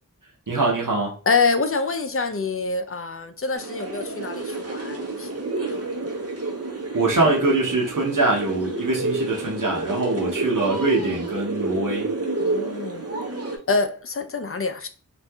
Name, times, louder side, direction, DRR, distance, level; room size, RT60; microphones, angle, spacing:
voice 1, 0.5-1.2 6.9-12.1, right 2 dB, 85° right, 0.9 m, -23 dB
voice 2, 1.3-5.9 12.4-13.1 13.7-14.9, left 4 dB, 45° left, 0.5 m, -26 dB
sound 1, 3.5-13.6, right 2 dB, 50° right, 0.8 m, -29 dB
2.7 x 2.5 x 3.4 m
wide cardioid pair, 40°, 31 cm